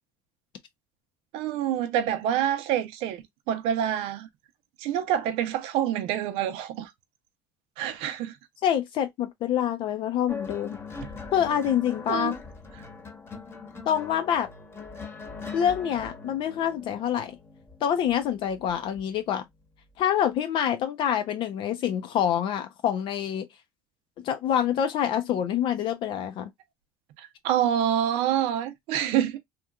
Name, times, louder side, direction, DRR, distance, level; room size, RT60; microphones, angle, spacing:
voice 1, 1.3-4.3 4.8-6.9 7.8-8.4 12.1-12.3 27.2-29.4, right 10 dB, 75° right, 0.6 m, -27 dB
voice 2, 8.6-10.8 11.3-12.3 13.9-14.5 15.5-17.4 17.8-19.4 20.0-23.5 24.2-26.5, left 9 dB, 60° left, 0.5 m, -26 dB
sound 1, 10.3-19.0 20.0-20.3, left 4 dB, 25° left, 1.0 m, -41 dB
2.9 x 2.4 x 2.3 m
supercardioid pair, 90°, 10 cm